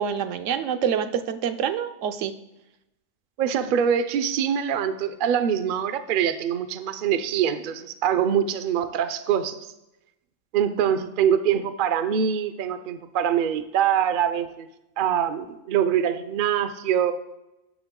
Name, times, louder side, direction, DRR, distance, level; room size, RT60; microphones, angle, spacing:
voice 1, 0.0-2.3, right 8 dB, 75° right, 9 dB, 0.9 m, -26 dB
voice 2, 3.4-9.6 10.5-14.7 15.0-17.1, right 8 dB, 60° right, 11 dB, 0.6 m, -24 dB
9.8 x 6.5 x 3.7 m, 0.92 s
omnidirectional pair, 1.3 m